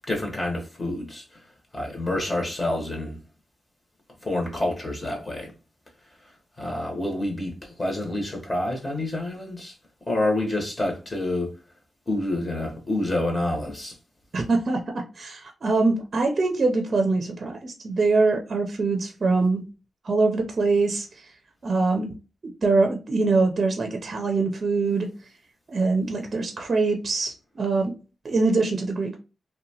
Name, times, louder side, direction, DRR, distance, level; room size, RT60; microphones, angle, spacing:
voice 1, 0.1-1.2 1.7-3.2 4.2-5.5 6.6-9.7 10.1-11.5 12.1-14.0, left 1 dB, 30° left, 0.9 m, -28 dB
voice 2, 14.3-19.7 20.0-21.1 21.6-22.1 22.6-25.1 25.7-27.9 28.2-29.2, right 3 dB, 50° right, 0.5 m, -23 dB
2.8 x 2.2 x 2.7 m
cardioid pair, 90°, 0 cm